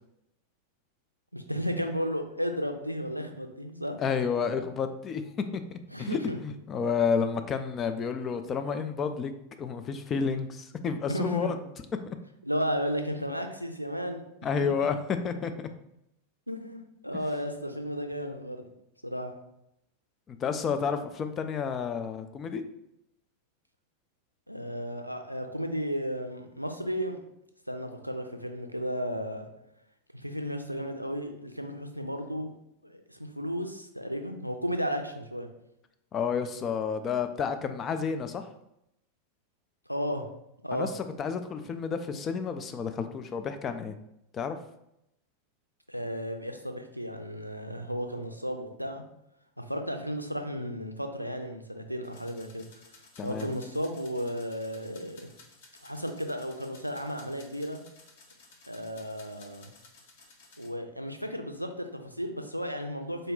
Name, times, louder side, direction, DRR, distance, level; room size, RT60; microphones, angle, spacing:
voice 1, 1.3-4.0 5.9-6.4 11.1-11.5 12.4-14.2 14.8-14.9 16.5-18.7 19.0-19.3 24.5-27.2 27.7-29.5 30.1-32.5 32.8-35.5 39.9-40.2 40.6-40.9 45.9-49.0 49.6-52.7 53.2-55.3 55.8-57.8 58.7-59.7 60.6-63.3, equal, 90° right, 5 dB, 0.4 m, -34 dB
voice 2, 4.0-5.2 5.5-9.3 9.6-11.6 12.1-12.2 14.4-15.0 15.2-15.7 20.3-22.6 36.1-38.4 40.7-44.0 44.3-44.6 53.2-53.5, left 6 dB, 25° left, 8 dB, 0.3 m, -30 dB
sound 1, 52.0-60.7, left 3 dB, 55° left, 0.7 m, -56 dB
3.9 x 2.2 x 3.6 m, 0.81 s
figure-of-eight pair, 90°, 0 cm